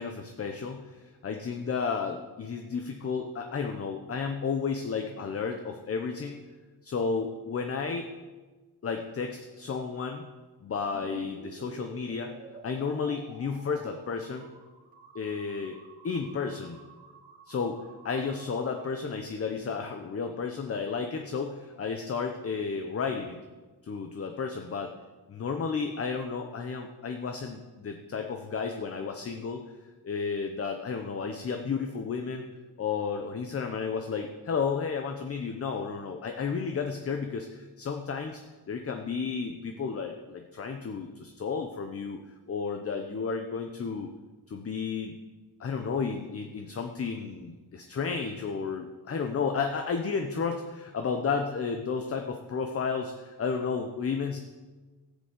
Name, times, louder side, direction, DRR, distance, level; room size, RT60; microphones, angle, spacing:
voice 1, 0.0-6.4 6.8-8.1 8.8-10.2 10.6-12.3 12.6-14.5 15.1-15.8 16.0-16.8 17.5-23.4 23.8-24.9 25.3-29.6 30.0-32.4 32.8-38.4 38.7-42.2 42.5-44.1 44.5-45.1 45.6-54.4, left 5 dB, 35° left, 5 dB, 1.0 m, -32 dB
sound 1, 10.9-18.8, right 3 dB, 20° right, 2.1 m, -50 dB
15.0 x 8.4 x 8.2 m, 1.3 s
wide cardioid pair, 160°, 40 cm